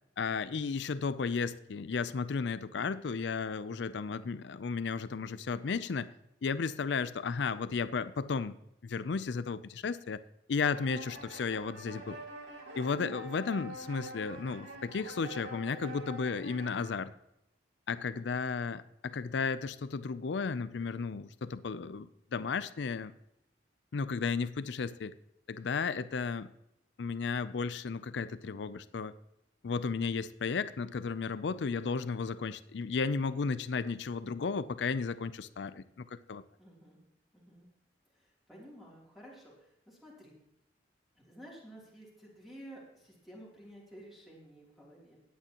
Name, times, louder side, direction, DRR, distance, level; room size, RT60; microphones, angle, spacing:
voice 1, 0.2-6.1 6.4-8.5 8.8-10.2 10.5-12.2 12.8-17.1 17.9-23.1 23.9-25.1 25.5-26.5 27.0-29.1 29.6-36.4, left 5 dB, 70° left, 15 dB, 0.4 m, -34 dB
voice 2, 6.7-7.0 18.1-18.4 36.6-37.0 37.3-37.7 38.1-40.4 41.1-45.2, equal, ahead, -5 dB, 3.0 m, -53 dB
sound 1, 10.7-17.0, right 1 dB, 80° right, 2.6 m, -46 dB
16.5 x 9.3 x 2.9 m, 0.83 s
head